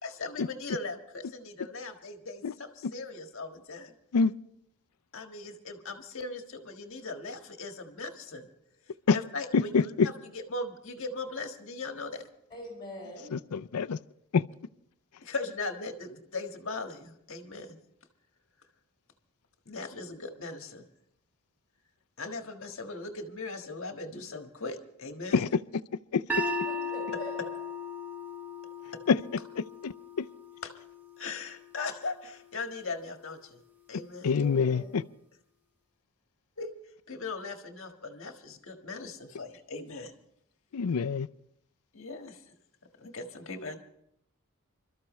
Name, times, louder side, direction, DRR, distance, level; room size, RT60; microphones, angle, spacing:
voice 1, 0.0-3.9 5.1-8.5 9.1-12.3 15.2-17.8 19.6-20.9 22.2-25.4 30.6-30.7 31.2-33.6 33.9-34.3 36.6-36.7 37.1-40.1 41.9-42.4 43.0-43.8, left 3 dB, 60° left, 5 dB, 1.6 m, -39 dB
voice 2, 9.5-10.1 13.3-14.0 14.3-14.4 25.3-25.6 26.1-26.2 29.1-29.2 29.6-30.3 34.2-35.0 40.7-41.3, left 5 dB, 90° left, 13 dB, 0.5 m, -26 dB
voice 3, 12.5-13.3 26.4-27.5 34.3-35.0, left 1 dB, 20° left, 1 dB, 7.6 m, -43 dB
sound 1, 26.3-32.5, left 2 dB, 10° right, 0.9 m, -37 dB
27.0 x 13.5 x 3.2 m, 0.73 s
head